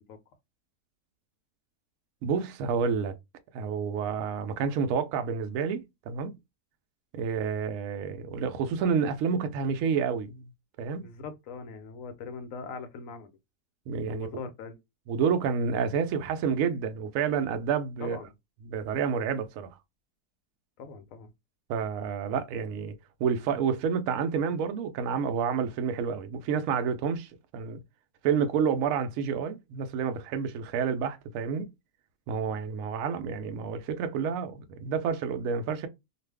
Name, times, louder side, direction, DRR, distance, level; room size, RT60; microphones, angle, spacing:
voice 1, 2.2-3.1 3.5-6.3 7.1-10.5 10.8-11.1 13.9-14.3 15.1-18.2 18.7-19.7 21.7-22.9 23.2-27.8 28.2-31.7 32.3-35.9, right 6 dB, 70° right, 0.8 m, -29 dB
voice 2, 11.0-13.4 14.1-14.8 18.0-18.3 20.8-21.3, left 5 dB, 70° left, 0.8 m, -41 dB
2.5 x 2.4 x 3.3 m
omnidirectional pair, 1.8 m